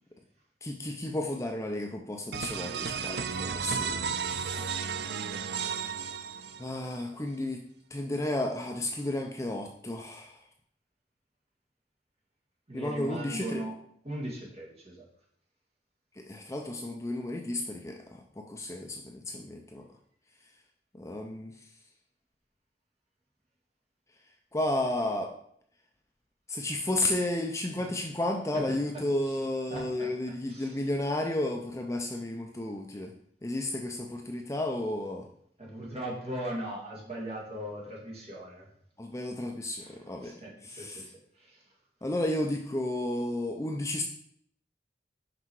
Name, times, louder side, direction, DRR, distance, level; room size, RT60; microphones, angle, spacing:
voice 1, 0.6-4.6 6.6-7.6 7.9-10.5 12.7-13.6 16.1-19.8 20.9-21.7 24.5-25.3 26.5-33.1 33.4-35.3 39.0-40.4 40.6-41.0 42.0-44.0, left 1 dB, 15° left, 3 dB, 0.5 m, -32 dB
sound 1, 2.3-6.9, right 6 dB, 65° right, 0.4 m, -33 dB
voice 2, 12.7-13.7 14.0-15.1 27.8-28.1 28.5-29.3 29.7-30.1 30.5-30.8 35.6-38.7 39.8-41.7, right 1 dB, 35° right, -3 dB, 2.3 m, -39 dB
6.0 x 5.5 x 4.7 m, 0.67 s
head